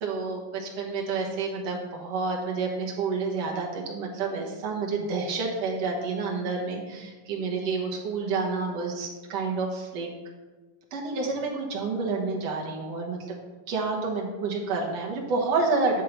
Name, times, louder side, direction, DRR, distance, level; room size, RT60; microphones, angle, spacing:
voice 1, 0.0-10.1 10.9-13.4 13.7-16.0, right 4 dB, 60° right, -1 dB, 2.0 m, -29 dB
9.9 x 3.7 x 5.7 m, 1.2 s
omnidirectional pair, 4.0 m